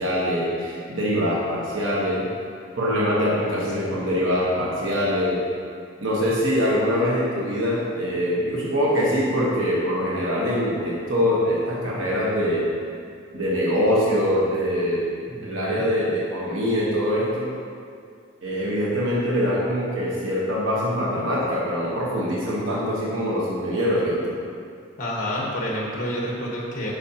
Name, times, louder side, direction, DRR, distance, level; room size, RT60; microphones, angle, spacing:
voice 1, 0.0-2.2 2.8-5.4 6.0-12.7 13.3-15.1 15.4-17.5 18.4-24.4, equal, 75° right, -6 dB, 1.2 m, -23 dB
voice 2, 3.3-4.1 15.3-15.9 25.0-26.9, equal, 40° left, -3 dB, 1.4 m, -30 dB
10.0 x 5.4 x 2.9 m, 2.3 s
head